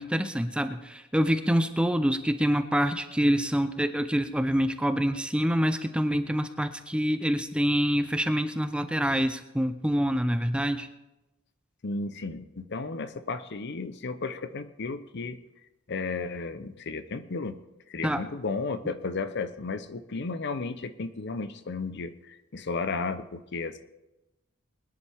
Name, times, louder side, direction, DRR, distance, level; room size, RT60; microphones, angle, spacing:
voice 1, 0.0-10.9 18.0-18.2, equal, 5° right, 9 dB, 0.6 m, -26 dB
voice 2, 11.8-15.4 15.9-17.6 17.9-23.8, left 4 dB, 55° left, 12 dB, 0.7 m, -34 dB
22.5 x 10.5 x 3.5 m, 0.99 s
head